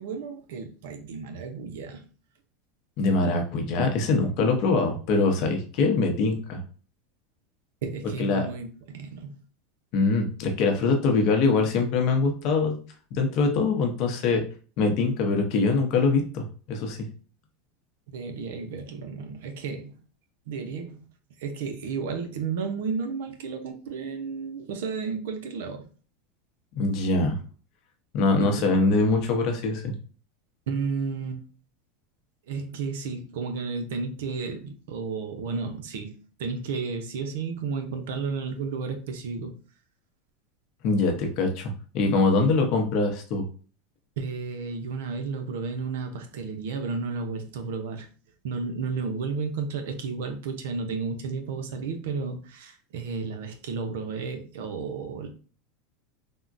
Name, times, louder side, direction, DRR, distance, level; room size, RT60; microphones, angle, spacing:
voice 1, 0.0-2.0 7.8-9.4 18.1-20.0 20.5-21.1 21.4-25.9 28.4-28.7 30.7-31.4 32.5-39.5 44.2-48.1 48.4-55.3, right 5 dB, 80° right, 0.6 m, -32 dB
voice 2, 3.0-6.6 8.2-8.5 9.9-12.8 13.1-14.4 14.8-17.0 26.8-27.4 28.1-29.9 40.8-43.4, left 3 dB, 50° left, 0.7 m, -23 dB
3.6 x 2.1 x 2.5 m
supercardioid pair, 150°, 0 cm